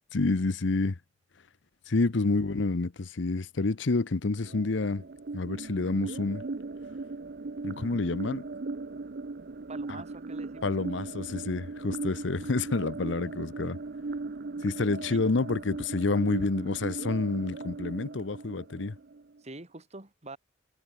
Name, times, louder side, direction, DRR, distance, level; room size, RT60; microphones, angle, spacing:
voice 1, 0.1-1.0 1.9-5.0 5.3-6.4 7.6-8.5 10.6-13.8 14.6-18.9, left 3 dB, 70° left, 0.8 m, -28 dB
sound 1, 4.4-19.4, right 3 dB, 55° right, 0.7 m, -38 dB
voice 2, 9.7-10.7 15.1-15.2 19.4-20.4, right 2 dB, 35° right, 2.7 m, -45 dB
head